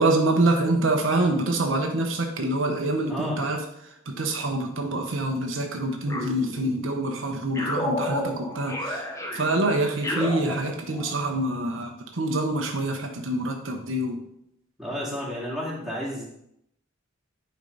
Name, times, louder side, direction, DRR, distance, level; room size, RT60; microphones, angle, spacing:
voice 1, 0.0-3.6 4.1-14.2, right 2 dB, 70° right, 3 dB, 0.9 m, -26 dB
voice 2, 3.1-3.5 10.4-10.5 14.8-16.2, equal, ahead, -6 dB, 2.3 m, -32 dB
sound 1, 6.1-7.1 7.5-11.2, left 1 dB, 15° left, 0.9 m, -32 dB
9.9 x 4.5 x 3.9 m, 0.76 s
head